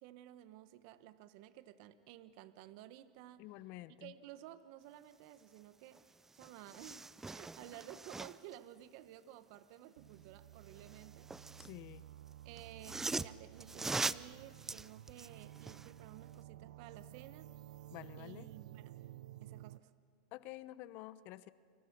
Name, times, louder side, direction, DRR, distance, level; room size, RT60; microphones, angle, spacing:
voice 1, 0.0-3.5 4.0-6.1 6.3-11.3 12.4-17.5 18.2-18.9 19.4-19.9, right 13 dB, 55° right, 12 dB, 1.2 m, -54 dB
voice 2, 3.4-4.1 11.6-12.0 17.9-18.5 20.3-21.5, left 16 dB, 50° left, 15 dB, 0.9 m, -49 dB
sound 1, 5.9-6.0 6.3-8.6 10.7-11.8 12.6-15.9 16.3-16.4, right 3 dB, 10° right, 0.5 m, -42 dB
sound 2, 10.0-19.8, right 13 dB, 75° right, 0.7 m, -54 dB
29.5 x 26.0 x 6.1 m, 2.2 s
hypercardioid pair, 115°, 4 cm